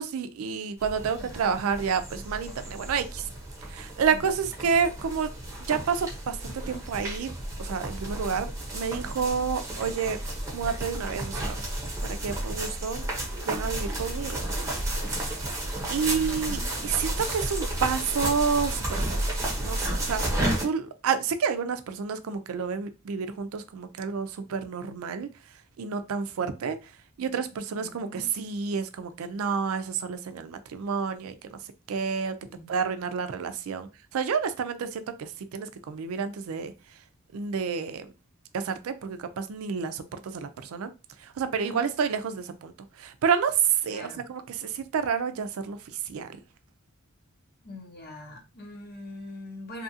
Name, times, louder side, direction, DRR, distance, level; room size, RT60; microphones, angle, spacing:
voice 1, 0.0-3.3 3.6-5.3 5.7-7.3 7.6-10.2 10.5-11.6 12.0-13.1 13.4-14.4 15.2-15.5 15.9-19.2 19.6-20.2 20.6-25.3 25.8-26.9 27.2-31.6 31.9-32.4 32.7-36.7 37.3-38.1 38.5-40.9 41.2-46.4, right 6 dB, 85° right, 0.4 m, -29 dB
sound 1, 0.8-20.6, right 1 dB, 15° right, 0.8 m, -32 dB
voice 2, 1.1-1.5 4.1-4.3 15.8-16.8 27.7-28.3 32.4-32.7 41.6-41.9 43.9-44.2 47.6-49.8, left 1 dB, 45° left, 0.8 m, -43 dB
2.8 x 2.4 x 2.6 m
head